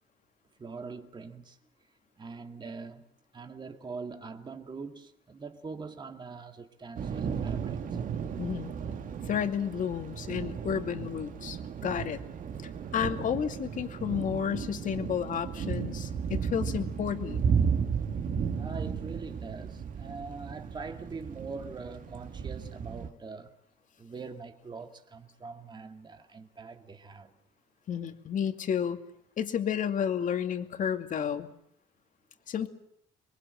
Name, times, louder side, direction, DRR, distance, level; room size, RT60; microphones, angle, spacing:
voice 1, 0.6-1.6 2.2-3.1 3.3-8.0 18.5-23.6 24.0-27.3, right 4 dB, 25° right, 2.3 m, -43 dB
Thunder / Rain, 7.0-23.1, right 6 dB, 50° right, 2.2 m, -34 dB
voice 2, 8.4-8.7 9.3-12.2 12.6-17.4 27.9-29.0 29.4-31.5 32.5-32.7, left 8 dB, 50° left, 2.5 m, -31 dB
27.5 x 23.0 x 7.8 m
cardioid pair, 110°, 17 cm